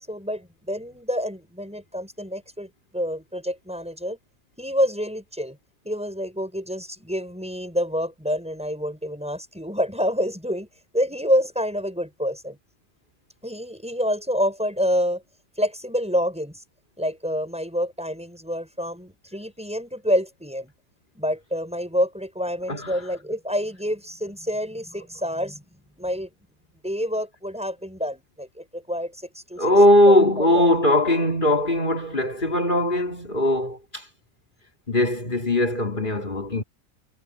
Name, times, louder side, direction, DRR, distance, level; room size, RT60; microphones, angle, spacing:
voice 1, 0.1-4.2 4.6-5.6 5.8-10.7 10.9-12.6 13.4-15.2 15.6-16.6 17.0-20.7 21.2-25.6 26.0-26.3 26.8-29.7 30.1-30.7, equal, 5° right, 7.2 m, -27 dB
voice 2, 22.7-23.0 29.6-34.1 34.9-36.6, left 1 dB, 35° left, 4.2 m, -20 dB
omnidirectional pair, 1.5 m